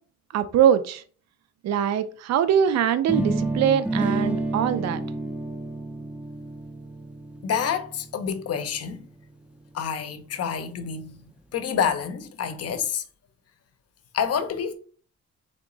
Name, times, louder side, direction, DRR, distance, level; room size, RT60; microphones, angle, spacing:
voice 1, 0.3-1.0 1.6-5.0, right 9 dB, 60° right, 0.5 m, -22 dB
sound 1, 3.1-9.0, right 2 dB, 5° right, 0.4 m, -30 dB
voice 2, 7.4-9.0 9.7-11.2 11.5-13.0 14.1-14.7, left 7 dB, 50° left, 0.7 m, -28 dB
3.6 x 3.0 x 3.8 m
cardioid pair, 120°, 30 cm